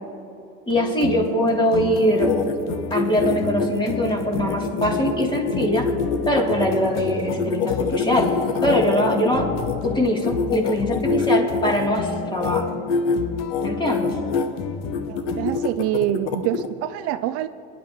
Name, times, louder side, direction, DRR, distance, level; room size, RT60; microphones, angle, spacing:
sound 1, 0.7-15.8, left 6 dB, 55° left, 1.0 m, -32 dB
voice 1, 0.7-2.3 2.9-5.9 6.2-8.3 8.6-9.5 9.8-12.8 13.6-14.1, equal, 15° left, -2 dB, 3.4 m, -22 dB
sound 2, 1.9-9.7 10.2-11.9 12.3-12.6 12.9-13.2 13.5-14.5 14.9-16.7, left 5 dB, 85° left, 1.1 m, -25 dB
voice 2, 15.1-17.5, right 12 dB, 50° right, 9 dB, 0.5 m, -25 dB
28.0 x 11.0 x 3.2 m, 2.7 s
supercardioid pair, 95°, 32 cm